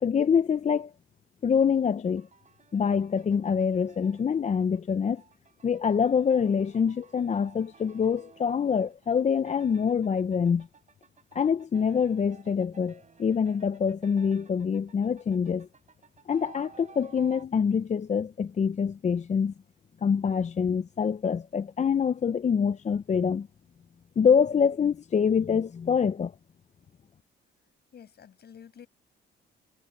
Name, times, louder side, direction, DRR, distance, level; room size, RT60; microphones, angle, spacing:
voice 1, 0.0-0.9 1.4-2.3 2.7-5.2 5.6-10.7 11.3-15.7 16.3-19.5 20.0-23.5 24.2-26.3, left 6 dB, 35° left, 0.7 m, -25 dB
sound 1, 2.0-17.4, right 5 dB, 35° right, 6.3 m, -55 dB
voice 2, 27.9-28.9, left 8 dB, 55° left, 7.8 m, -49 dB
cardioid pair, 90°, 20 cm